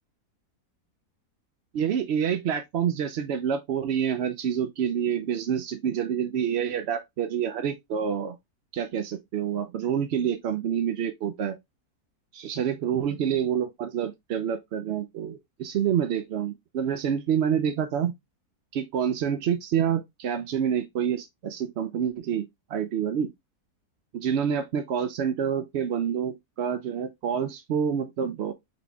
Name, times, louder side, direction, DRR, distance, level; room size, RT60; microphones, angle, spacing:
voice 1, 1.7-8.4 8.7-11.6 12.3-18.1 18.7-22.4 22.7-23.3 24.1-28.5, right 8 dB, 80° right, 0.5 m, -27 dB
3.8 x 3.5 x 2.2 m
omnidirectional pair, 1.7 m